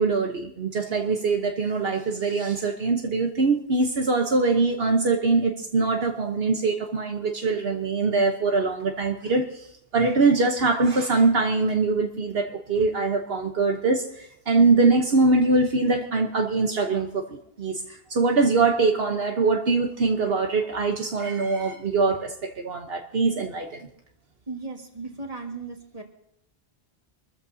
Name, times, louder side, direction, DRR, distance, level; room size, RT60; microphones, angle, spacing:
voice 1, 0.0-9.6 9.9-23.9, right 3 dB, 70° right, 3 dB, 1.3 m, -23 dB
voice 2, 24.5-26.0, right 3 dB, 35° right, 2 dB, 2.1 m, -36 dB
25.5 x 14.0 x 2.8 m, 0.77 s
omnidirectional pair, 1.0 m